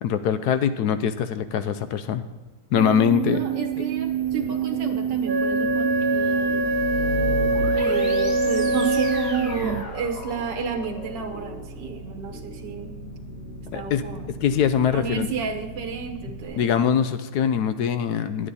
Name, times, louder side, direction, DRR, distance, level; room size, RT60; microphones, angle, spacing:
voice 1, 0.0-2.2 2.7-3.4 3.8-3.9 13.7-14.0 14.4-15.3 16.5-18.5, left 8 dB, 70° left, 11 dB, 1.0 m, -23 dB
sound 1, 2.8-9.8, right 11 dB, 85° right, 0.7 m, -28 dB
voice 2, 3.2-6.7 7.8-12.9 13.7-14.3 14.9-16.7, right 6 dB, 70° right, 6 dB, 1.6 m, -31 dB
Wind instrument woodwind instrument, 5.2-9.9, equal, 15° right, 1.2 m, -24 dB
sound 2, 6.5-16.4, left 1 dB, 45° left, 1.8 m, -35 dB
11.5 x 9.5 x 4.1 m, 1.3 s
omnidirectional pair, 2.1 m